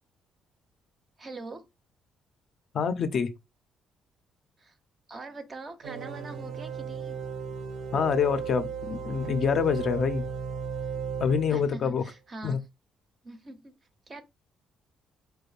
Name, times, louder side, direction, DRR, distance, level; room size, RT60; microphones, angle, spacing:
voice 1, 1.2-1.7 4.6-4.8 5.1-7.2 11.5-12.7 13.2-13.7 14.1-14.2, right 3 dB, 25° right, 0.5 m, -43 dB
voice 2, 2.7-3.3 7.9-10.3 11.2-12.0 12.4-12.6, left 6 dB, 40° left, 0.5 m, -26 dB
sound 1, 5.8-12.0, right 6 dB, 70° right, 0.5 m, -35 dB
4.5 x 2.4 x 3.2 m
cardioid pair, 175°, 0 cm